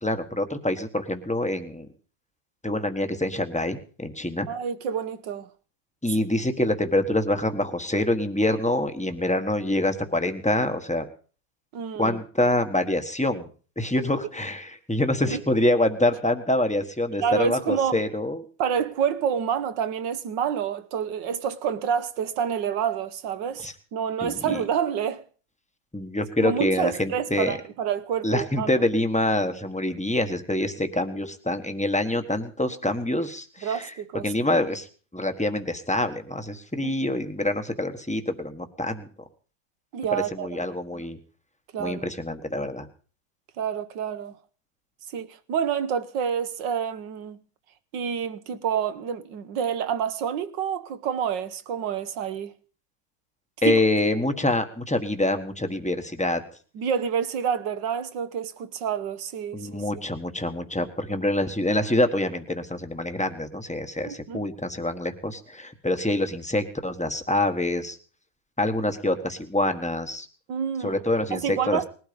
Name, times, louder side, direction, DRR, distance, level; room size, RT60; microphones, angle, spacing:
voice 1, 0.0-1.9 2.6-4.5 6.0-11.1 12.0-13.5 13.8-18.4 23.6-23.7 24.2-24.6 25.9-27.6 28.2-33.9 34.2-34.9 35.1-39.1 40.1-41.2 41.8-42.9 53.6-56.4 59.5-68.0 68.6-70.3 70.8-71.8, left 1 dB, 5° left, 1.1 m, -26 dB
voice 2, 4.5-5.5 11.7-12.2 15.3-15.4 17.2-18.0 18.6-25.2 26.4-28.9 33.6-34.3 36.8-36.9 39.9-40.7 41.7-42.1 43.6-44.3 45.1-47.4 47.9-52.5 53.6-53.8 56.7-59.8 64.0-64.5 70.5-71.0 71.3-71.8, right 8 dB, 70° right, 1.7 m, -28 dB
20.0 x 12.5 x 5.2 m
omnidirectional pair, 2.0 m